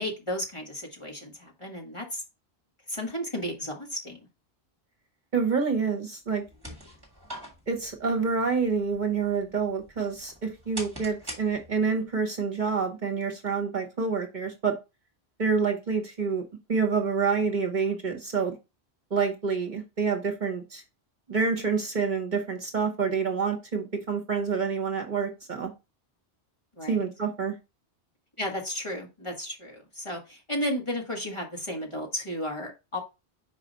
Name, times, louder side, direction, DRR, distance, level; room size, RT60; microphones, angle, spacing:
voice 1, 0.0-2.2 2.9-4.3 26.7-27.0 28.4-33.0, left 1 dB, 30° left, 0 dB, 1.6 m, -33 dB
voice 2, 5.3-6.4 7.7-14.8 15.4-16.4 16.7-18.5 19.1-20.8 21.3-25.7 26.9-27.5, right 5 dB, 45° right, 5 dB, 1.1 m, -27 dB
sound 1, 6.3-12.0, right 1 dB, 20° right, 1.8 m, -45 dB
5.3 x 4.9 x 4.0 m, 0.27 s
omnidirectional pair, 1.1 m